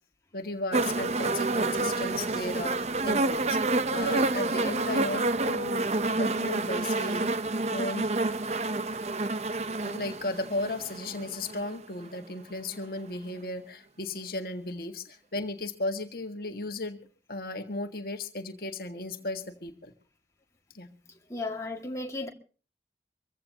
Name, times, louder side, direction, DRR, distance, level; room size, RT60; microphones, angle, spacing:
voice 1, 0.3-2.7 3.0-3.6 3.9-5.9 6.2-8.0 9.8-17.0 17.3-19.9 20.7-20.9, left 2 dB, 55° left, 1.7 m, -35 dB
sound 1, 0.7-11.8 12.7-12.8, right 2 dB, 40° right, 0.7 m, -28 dB
voice 2, 21.3-22.3, left 2 dB, 15° left, 1.9 m, -34 dB
24.5 x 16.0 x 2.8 m
head